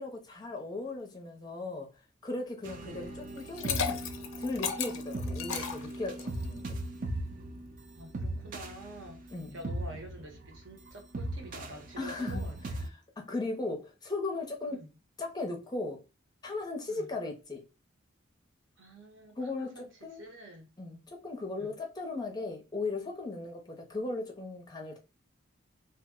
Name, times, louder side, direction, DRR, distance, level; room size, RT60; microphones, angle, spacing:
voice 1, 0.0-1.9 2.2-4.0 4.4-6.8 9.3-9.6 12.0-12.4 13.2-14.8 15.2-16.0 16.4-17.6 19.4-20.2 20.8-25.0, left 3 dB, 20° left, 0.5 m, -37 dB
sound 1, 2.6-12.9, right 1 dB, 40° right, 0.4 m, -38 dB
Liquid, 3.4-6.4, left 7 dB, 80° left, 0.5 m, -35 dB
voice 2, 7.9-13.0 14.7-15.0 16.9-17.1 18.8-20.7 21.6-21.7, right 1 dB, 60° right, 0.8 m, -48 dB
2.7 x 2.0 x 3.5 m
head